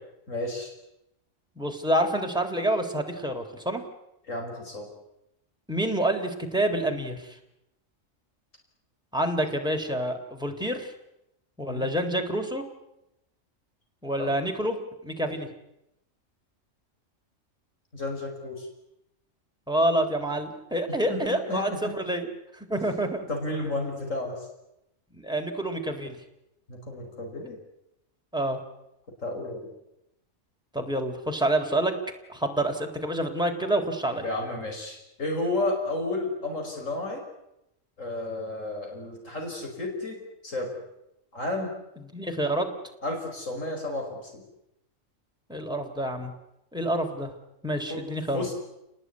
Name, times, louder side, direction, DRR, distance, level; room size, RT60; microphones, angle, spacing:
voice 1, 0.3-0.7 4.3-4.9 11.7-11.9 14.2-14.4 15.3-15.4 17.9-18.7 21.1-21.9 23.3-24.4 26.7-27.6 29.2-29.7 34.2-37.2 38.0-40.2 40.4-40.7 41.3-41.7 43.0-44.4 47.9-48.1 48.3-48.5, left 2 dB, 75° left, 2 dB, 5.8 m, -32 dB
voice 2, 1.6-3.8 5.7-7.4 9.1-10.9 11.6-12.7 14.0-15.5 19.7-22.3 22.5-23.3 25.1-26.2 28.3-28.6 30.7-31.9 32.3-34.3 42.1-42.7 45.5-46.3 46.7-47.3 47.6-48.5, right 1 dB, 5° right, 3 dB, 3.6 m, -27 dB
29.5 x 19.5 x 9.6 m, 0.87 s
omnidirectional pair, 1.3 m